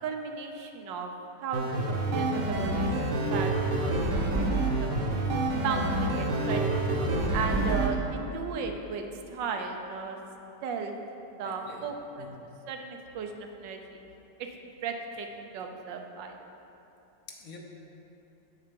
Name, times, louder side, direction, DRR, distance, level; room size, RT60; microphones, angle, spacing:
voice 1, 0.0-1.1 1.4-4.2 4.6-5.0 5.6-6.9 7.3-9.0 9.3-10.2 10.6-10.9 11.4-12.3 12.7-14.0 14.8-16.4, right 5 dB, 90° right, 4 dB, 1.4 m, -35 dB
sound 1, 1.5-7.9, right 2 dB, 70° right, 1.6 m, -27 dB
voice 2, 11.4-11.9 12.2-12.3 17.3-17.6, left 4 dB, 60° left, 0 dB, 1.1 m, -45 dB
7.5 x 6.8 x 5.2 m, 3.0 s
omnidirectional pair, 1.9 m